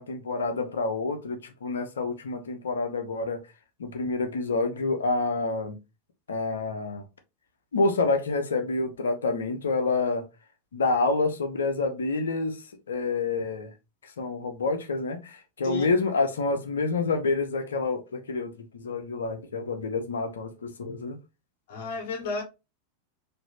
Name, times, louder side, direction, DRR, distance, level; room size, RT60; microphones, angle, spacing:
voice 1, 0.0-3.4 3.8-5.8 6.3-7.0 7.7-10.2 10.7-12.6 12.9-13.7 14.2-21.2, left 3 dB, 70° left, 0.8 m, -28 dB
voice 2, 21.7-22.4, left 4 dB, 50° left, 1.3 m, -32 dB
4.2 x 2.8 x 2.9 m
figure-of-eight pair, 90°, 0 cm